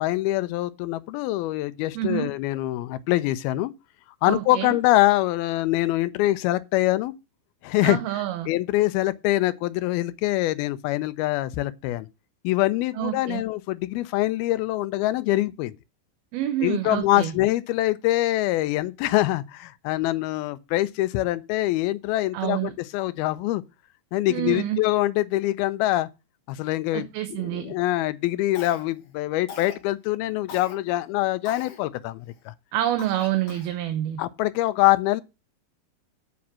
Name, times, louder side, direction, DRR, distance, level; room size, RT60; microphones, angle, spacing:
voice 1, 0.0-3.7 4.2-7.1 7.6-8.0 8.5-12.1 12.4-15.8 16.6-23.6 24.1-26.1 26.5-27.1 27.4-32.5 34.2-35.2, left 16 dB, 80° left, 2.5 m, -24 dB
voice 2, 2.0-2.3 4.3-4.7 7.8-8.5 13.0-13.4 16.3-17.3 22.3-22.7 24.3-24.8 26.9-27.7 32.7-34.2, right 13 dB, 80° right, 2.8 m, -27 dB
Cough, 28.6-29.1 29.5-29.8 30.5-30.8 31.5-31.8 32.3-32.4 33.0-33.8, left 6 dB, 55° left, 1.7 m, -41 dB
8.6 x 5.3 x 7.5 m
omnidirectional pair, 4.4 m